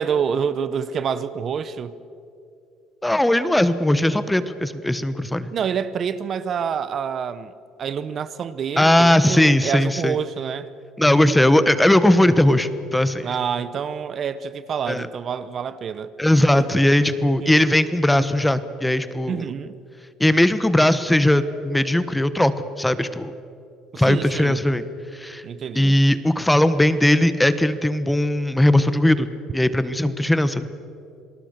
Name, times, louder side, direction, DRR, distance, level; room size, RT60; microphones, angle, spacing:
voice 1, 0.0-2.0 5.5-7.5 7.8-10.7 13.2-16.1 16.5-16.7 17.4-17.5 19.3-19.8 23.9-24.6 25.4-26.0, right 7 dB, 50° right, 14 dB, 0.9 m, -27 dB
voice 2, 3.0-5.5 8.8-10.1 11.0-13.3 14.9-15.1 16.2-19.4 20.2-22.5 22.8-23.3 23.9-24.8 25.1-25.4 25.7-29.3 29.5-30.7, left 1 dB, 5° left, 13 dB, 1.2 m, -18 dB
28.0 x 19.0 x 6.7 m, 2.6 s
supercardioid pair, 90°, 0 cm